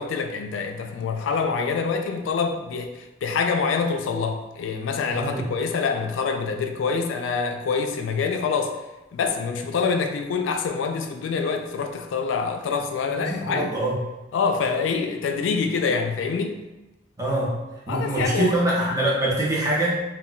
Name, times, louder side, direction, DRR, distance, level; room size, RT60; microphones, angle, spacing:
voice 1, 0.0-8.8 9.1-13.7 14.3-16.6 17.9-18.6, left 5 dB, 80° left, 5 dB, 0.3 m, -26 dB
voice 2, 13.1-14.0 17.2-17.6 17.9-20.0, right 1 dB, 15° right, -4 dB, 0.6 m, -24 dB
2.2 x 2.2 x 3.8 m, 1.0 s
head